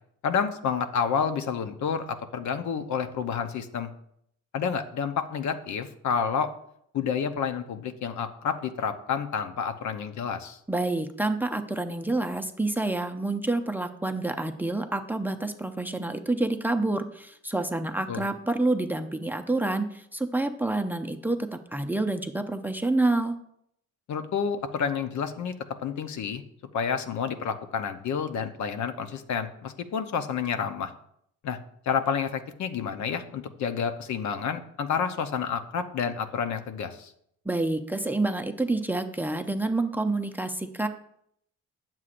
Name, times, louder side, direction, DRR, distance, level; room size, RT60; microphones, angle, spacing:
voice 1, 0.2-3.9 4.5-6.5 6.9-10.6 18.1-18.2 24.1-25.5 25.8-26.4 26.7-30.9 31.4-31.6 31.9-37.1, left 6 dB, 70° left, 8 dB, 0.8 m, -29 dB
voice 2, 10.7-23.4 37.4-40.9, right 2 dB, 5° right, 7 dB, 0.6 m, -28 dB
9.5 x 7.4 x 2.5 m, 0.71 s
cardioid pair, 90°, 30 cm